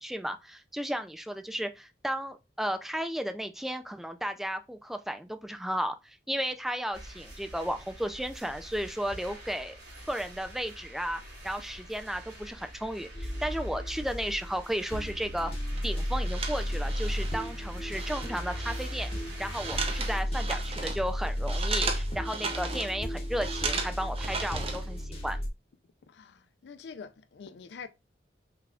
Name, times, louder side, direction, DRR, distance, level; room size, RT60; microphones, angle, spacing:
voice 1, 0.0-9.8 10.1-15.5 15.8-25.4, equal, ahead, 0.4 m, -34 dB
sound 1, 6.9-20.2, right 1 dB, 70° right, 3.0 m, -46 dB
sound 2, 13.1-14.5 14.9-25.5, equal, 35° left, 1.3 m, -34 dB
sound 3, 15.7-25.0, right 4 dB, 35° right, 0.8 m, -37 dB
voice 2, 26.1-27.9, left 5 dB, 70° left, 0.4 m, -45 dB
5.8 x 3.5 x 2.3 m
head